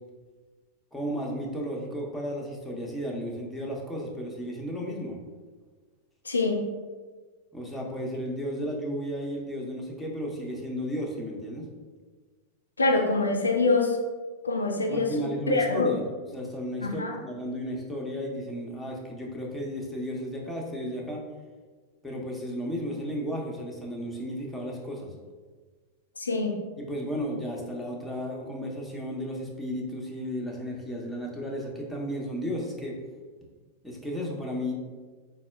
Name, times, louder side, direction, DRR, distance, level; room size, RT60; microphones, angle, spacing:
voice 1, 0.9-5.2 7.5-11.7 14.9-16.0 16.3-21.2 22.0-25.1 26.8-33.0 33.8-34.7, equal, 5° left, -3 dB, 1.0 m, -34 dB
voice 2, 6.2-6.6 12.8-14.0 14.4-15.1 15.5-15.9 16.8-17.2 26.2-26.5, left 3 dB, 90° left, 2 dB, 0.4 m, -24 dB
4.0 x 2.3 x 4.4 m, 1.4 s
hypercardioid pair, 95°, 0 cm